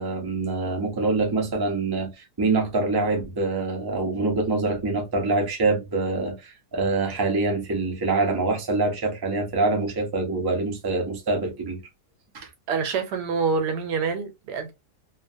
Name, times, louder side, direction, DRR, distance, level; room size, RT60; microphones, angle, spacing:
voice 1, 0.0-11.8 12.3-12.5, right 3 dB, 30° right, 0.4 m, -25 dB
voice 2, 12.7-14.7, right 5 dB, 80° right, 1.3 m, -26 dB
2.8 x 2.3 x 2.6 m
omnidirectional pair, 1.7 m